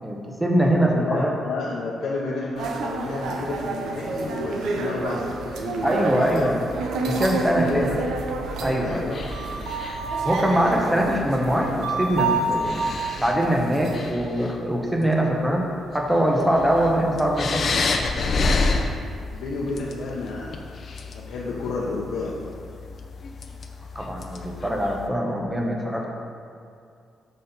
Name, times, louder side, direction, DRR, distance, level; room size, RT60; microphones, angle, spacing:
voice 1, 0.0-1.3 5.8-6.6 7.0-7.9 8.6-9.0 10.3-12.9 13.2-15.7 15.9-17.7 23.9-26.1, equal, 5° right, 0 dB, 0.8 m, -23 dB
voice 2, 0.9-6.5 7.7-8.1 8.8-9.4 19.0-20.6 21.1-22.5, left 3 dB, 85° left, -5 dB, 0.8 m, -31 dB
sound 1, 2.6-14.1, right 3 dB, 80° right, 0.7 m, -29 dB
sound 2, 9.1-10.2 11.7-11.8 12.4-13.4 13.8-14.6 15.2-15.3 15.9-25.1, left 3 dB, 40° left, 0.5 m, -30 dB
6.4 x 5.4 x 4.0 m, 2.4 s
cardioid pair, 150°, 0 cm